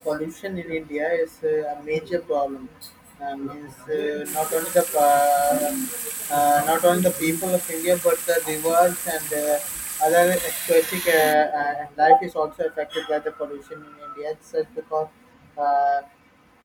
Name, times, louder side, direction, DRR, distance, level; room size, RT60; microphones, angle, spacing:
voice 1, 0.0-2.7 3.2-5.9 6.3-9.6 10.0-14.6 14.9-15.1 15.6-16.0, equal, 5° right, 1.5 m, -22 dB
sound 1, 4.2-11.3, right 4 dB, 50° right, 0.7 m, -31 dB
wide cardioid pair, 110°, 0 cm